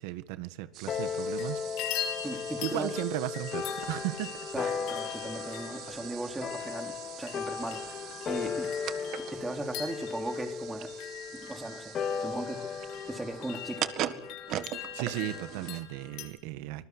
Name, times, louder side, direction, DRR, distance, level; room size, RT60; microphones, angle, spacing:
voice 1, 0.0-2.1 2.6-4.8 14.9-16.9, right 16 dB, 80° right, 1.7 m, -36 dB
sound 1, 0.7-16.1, right 13 dB, 45° right, 1.8 m, -42 dB
sound 2, 0.9-15.6, left 6 dB, 30° left, 2.2 m, -37 dB
sound 3, 1.1-1.5 1.8-16.3, left 10 dB, 65° left, 5.5 m, -43 dB
voice 2, 2.2-3.0 4.5-8.7 9.2-10.9 11.3-11.9 12.2-12.7 13.1-14.2, right 2 dB, 10° right, 3.2 m, -38 dB
25.5 x 21.0 x 8.2 m
cardioid pair, 160°, 0 cm